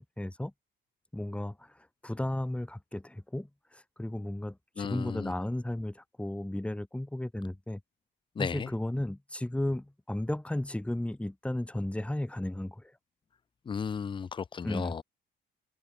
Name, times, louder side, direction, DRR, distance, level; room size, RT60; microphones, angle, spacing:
voice 1, 0.2-0.5 1.1-7.8 8.4-12.9 14.6-14.9, left 1 dB, 5° left, 1.6 m, -34 dB
voice 2, 4.8-5.3 8.4-8.7 13.7-15.0, left 6 dB, 25° left, 0.4 m, -34 dB
cardioid pair, 90°, 20 cm